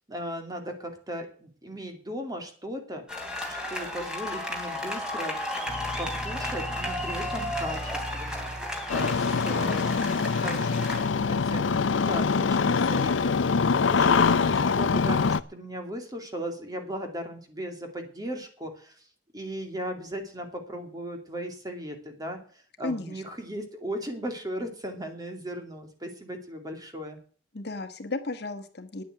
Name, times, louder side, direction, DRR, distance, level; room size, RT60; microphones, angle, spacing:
voice 1, 0.1-3.0 3.5-5.4 6.0-8.5 8.9-10.0 10.3-19.0 19.3-27.2, equal, 20° right, 4 dB, 2.5 m, -37 dB
sound 1, 3.1-11.1, left 1 dB, 5° right, 3.1 m, -34 dB
sound 2, 5.7-9.1, left 1 dB, 25° left, 0.9 m, -39 dB
Engine starting, 8.9-15.4, left 5 dB, 85° left, 0.6 m, -24 dB
voice 2, 9.9-10.4 22.8-23.2 27.5-29.0, left 2 dB, 60° left, 7 dB, 1.5 m, -34 dB
10.0 x 8.8 x 7.9 m, 0.43 s
head